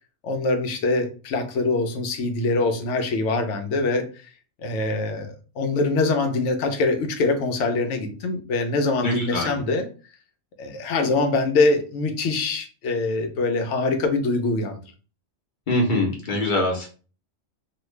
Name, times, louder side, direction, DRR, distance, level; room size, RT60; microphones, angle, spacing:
voice 1, 0.2-4.1 4.6-9.9 10.6-14.8, left 3 dB, 75° left, 6 dB, 0.9 m, -24 dB
voice 2, 9.0-9.6 15.7-16.9, left 1 dB, 45° left, -1 dB, 1.0 m, -23 dB
3.0 x 2.3 x 3.1 m, 0.37 s
omnidirectional pair, 1.3 m